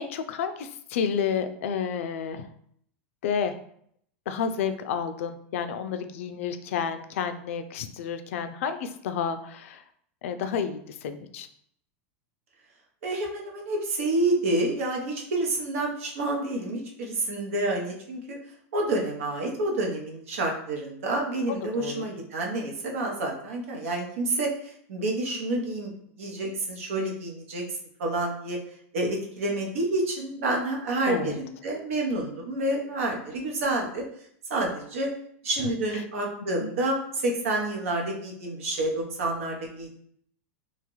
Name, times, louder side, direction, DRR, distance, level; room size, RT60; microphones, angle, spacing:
voice 1, 0.0-2.5 3.2-3.6 4.3-9.8 10.2-11.5 21.8-22.0 31.1-31.4 35.6-36.0 36.6-36.7, left 7 dB, 80° left, 9 dB, 0.4 m, -30 dB
voice 2, 13.0-18.4 18.7-27.6 28.0-28.6 28.9-34.0 34.5-35.1 35.4-40.0, right 2 dB, 85° right, 0 dB, 0.9 m, -29 dB
2.9 x 2.4 x 3.0 m, 0.65 s
supercardioid pair, 145°, 7 cm